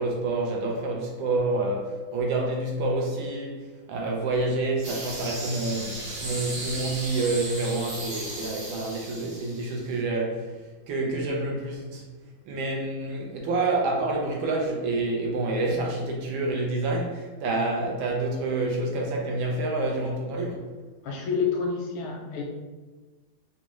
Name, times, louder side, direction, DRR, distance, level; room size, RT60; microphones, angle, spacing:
voice 1, 0.0-10.5 10.9-12.1 12.4-20.7, right 2 dB, 80° right, -1 dB, 1.4 m, -28 dB
sound 1, 4.8-9.9, right 1 dB, 45° right, 1.2 m, -36 dB
voice 2, 21.0-22.4, left 5 dB, 85° left, 1 dB, 1.4 m, -28 dB
4.1 x 2.2 x 3.1 m, 1.3 s
omnidirectional pair, 2.3 m